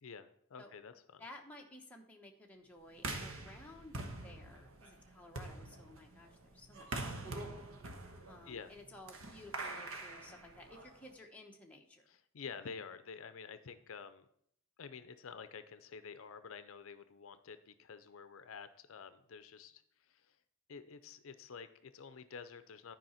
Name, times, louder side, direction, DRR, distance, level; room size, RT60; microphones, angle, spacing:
voice 1, 0.0-1.2 8.5-8.7 12.1-14.3 14.8-20.4 20.7-23.0, left 5 dB, 70° left, 12 dB, 0.5 m, -50 dB
voice 2, 1.2-7.5 8.2-12.1, left 1 dB, 5° left, 0 dB, 0.9 m, -55 dB
sound 1, 3.0-11.1, right 2 dB, 70° right, 1.2 m, -45 dB
10.5 x 4.9 x 5.6 m, 0.69 s
head